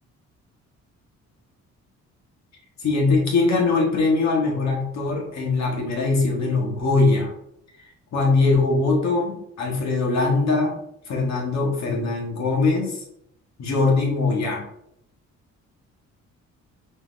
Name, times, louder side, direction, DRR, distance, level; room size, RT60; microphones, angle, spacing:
voice 1, 2.8-7.3 8.1-10.8 11.1-13.0 13.6-14.6, left 3 dB, 65° left, -1 dB, 1.4 m, -21 dB
4.4 x 3.4 x 2.5 m, 0.76 s
cardioid pair, 90°, 30 cm